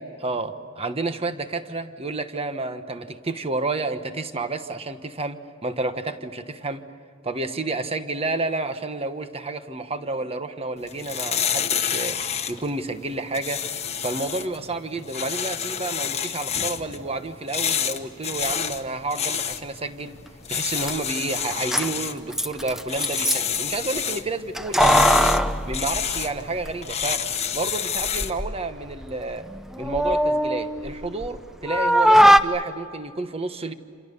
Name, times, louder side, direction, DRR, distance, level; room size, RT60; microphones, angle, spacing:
voice 1, 0.0-6.8 7.2-12.2 12.5-13.6 14.0-20.2 20.5-25.1 25.7-27.2 27.5-29.5 29.8-33.7, right 2 dB, 30° right, 9 dB, 1.2 m, -30 dB
sound 1, 10.8-28.4, left 8 dB, 30° left, 1.2 m, -29 dB
Keys jangling, 20.5-20.6 20.8-20.9 21.5-23.6 24.5-26.7 27.0-27.1 28.0-28.5 28.9-31.4 31.7-32.4, equal, ahead, 0.7 m, -20 dB
28.0 x 27.5 x 6.9 m, 2.4 s
head